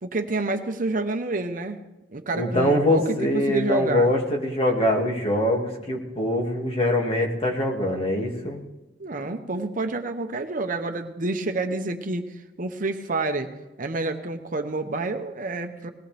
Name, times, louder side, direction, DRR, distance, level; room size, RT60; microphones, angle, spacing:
voice 1, 0.0-1.8 2.1-4.1 9.0-12.3 12.6-13.5 13.8-15.9, right 2 dB, 50° right, 6 dB, 1.0 m, -28 dB
voice 2, 2.3-8.6, left 1 dB, 35° left, 0 dB, 2.4 m, -23 dB
19.5 x 17.0 x 3.4 m, 1.0 s
head